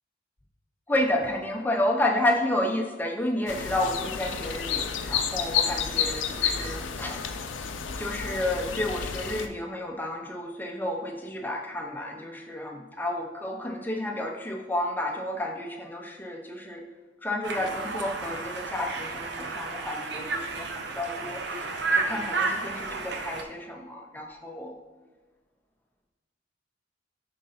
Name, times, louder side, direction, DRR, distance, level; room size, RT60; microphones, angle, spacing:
voice 1, 0.9-7.3 8.0-16.8 17.2-24.7, left 1 dB, 10° left, 2 dB, 0.6 m, -31 dB
sound 1, 3.5-9.5, left 7 dB, 85° left, 0.5 m, -30 dB
Conversation, 17.4-23.4, right 3 dB, 65° right, 0.6 m, -31 dB
5.4 x 3.8 x 5.5 m, 1.3 s
head